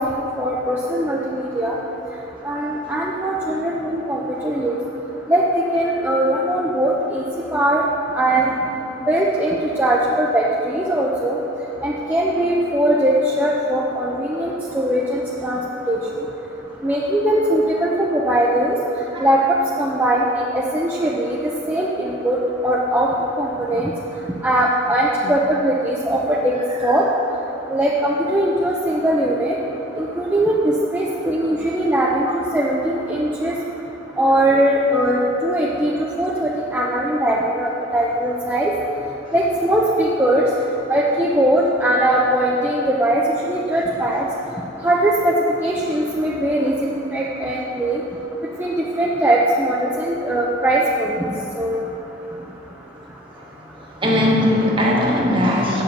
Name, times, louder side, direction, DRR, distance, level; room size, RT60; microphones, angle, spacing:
voice 1, 0.0-1.7 2.4-4.8 5.3-5.4 5.7-7.2 7.5-7.9 8.1-8.5 9.1-11.4 11.8-15.6 15.9-16.0 16.8-18.8 19.2-19.4 19.8-20.2 20.5-21.4 21.7-22.4 22.6-23.1 23.4-23.9 24.4-26.5 26.8-27.0 27.7-29.6 30.0-33.5 34.2-38.7 39.3-40.4 40.9-43.2 43.5-44.2 44.8-45.3 45.6-46.7 47.1-48.0 48.6-51.3 51.6-51.8 55.2-55.3, right 1 dB, 10° right, -4 dB, 0.7 m, -20 dB
voice 2, 54.0-55.8, left 1 dB, 25° right, -2 dB, 1.4 m, -19 dB
8.5 x 7.6 x 6.5 m, 3.0 s
head